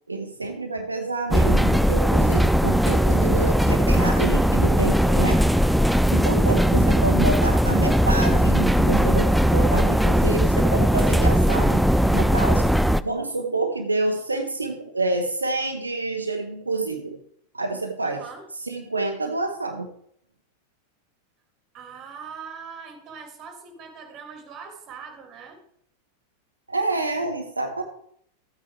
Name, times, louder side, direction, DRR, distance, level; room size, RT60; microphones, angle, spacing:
voice 1, 0.1-5.4 6.1-11.8 12.1-12.7 13.0-17.2 17.5-18.2 18.7-19.9 26.7-27.9, right 3 dB, 80° right, 4 dB, 1.0 m, -27 dB
sound 1, 1.3-13.0, equal, ahead, 0.4 m, -19 dB
voice 2, 5.0-5.7 18.0-18.5 21.7-25.6, right 5 dB, 35° right, 4 dB, 2.6 m, -41 dB
14.0 x 8.8 x 3.3 m, 0.68 s
figure-of-eight pair, 90°, 0 cm